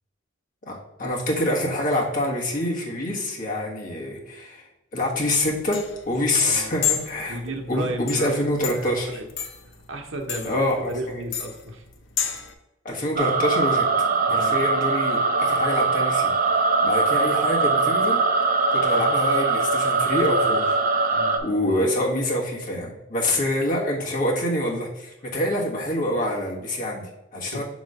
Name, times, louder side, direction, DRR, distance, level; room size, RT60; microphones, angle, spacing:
voice 1, 0.6-7.4 7.7-9.2 10.4-10.8 11.1-11.2 12.8-13.8 14.3-16.5 16.8-18.2 18.7-20.8 21.4-27.6, left 1 dB, 45° left, -3 dB, 1.4 m, -26 dB
sound 1, 5.1-12.5, left 9 dB, 70° left, 0.7 m, -32 dB
voice 2, 6.4-6.8 7.3-9.2 9.9-11.8 14.3-14.6 21.1-21.4 23.3-23.5 27.3-27.6, right 1 dB, 80° right, 3 dB, 0.9 m, -34 dB
sound 2, 13.2-21.4, right 3 dB, 45° right, 0.6 m, -21 dB
6.1 x 3.1 x 5.3 m, 0.97 s
head